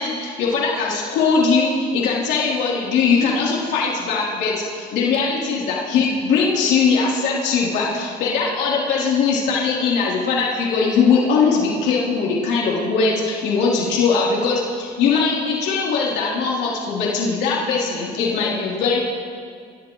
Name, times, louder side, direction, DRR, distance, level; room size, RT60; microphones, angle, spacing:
voice 1, 0.0-19.0, left 5 dB, 85° left, -5 dB, 3.4 m, -20 dB
28.5 x 15.0 x 3.1 m, 2.2 s
cardioid pair, 110°, 17 cm